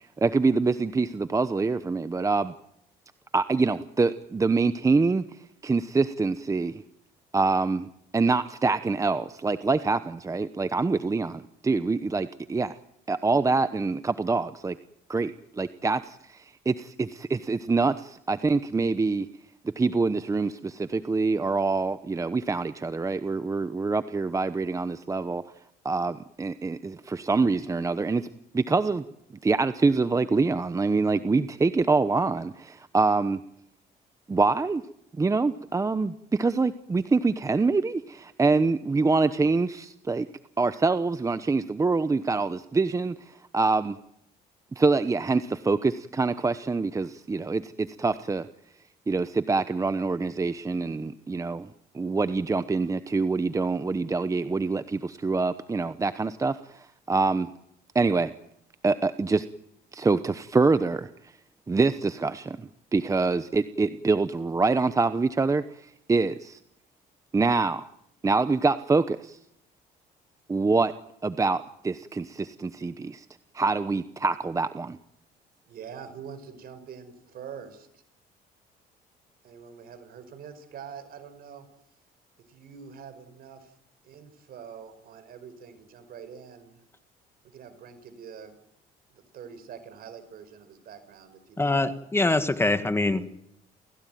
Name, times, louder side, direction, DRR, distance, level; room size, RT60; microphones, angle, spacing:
voice 1, 0.2-2.5 3.3-5.2 5.6-6.8 7.3-12.7 13.1-14.8 15.1-19.3 19.8-25.4 25.8-28.3 28.5-29.0 29.4-33.4 34.3-34.8 35.2-40.3 40.6-44.0 44.8-48.5 49.1-57.5 57.9-58.3 58.8-59.5 59.9-61.1 61.7-66.6 67.3-67.9 68.2-69.4 70.5-70.9 71.2-73.2 73.5-75.0, right 3 dB, 20° right, 12 dB, 0.9 m, -25 dB
voice 2, 75.7-78.0 79.4-81.7 82.5-83.7 84.0-86.8 87.4-88.5 89.1-91.8, right 7 dB, 60° right, 10 dB, 5.1 m, -45 dB
voice 3, 91.6-93.2, left 2 dB, 15° left, 10 dB, 1.8 m, -24 dB
29.5 x 17.0 x 9.3 m, 0.78 s
cardioid pair, 110°, 17 cm